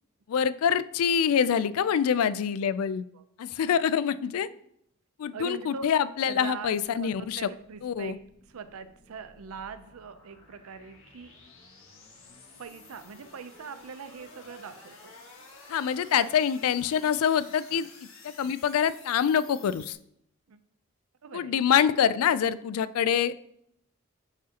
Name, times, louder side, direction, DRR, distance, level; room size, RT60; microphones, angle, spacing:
voice 1, 0.3-3.1 3.4-4.5 5.2-7.5 7.8-8.2 15.7-17.9 18.2-20.0 21.3-23.3, left 8 dB, 85° left, 16 dB, 0.3 m, -25 dB
voice 2, 2.8-3.2 5.3-5.9 6.2-8.2 8.5-11.4 12.6-15.1 16.2-16.4 17.7-17.9 20.5-20.6 21.2-21.6, right 6 dB, 80° right, 12 dB, 0.5 m, -42 dB
sound 1, 6.6-19.9, left 3 dB, 70° left, 1.5 m, -52 dB
9.7 x 5.0 x 2.8 m, 0.73 s
head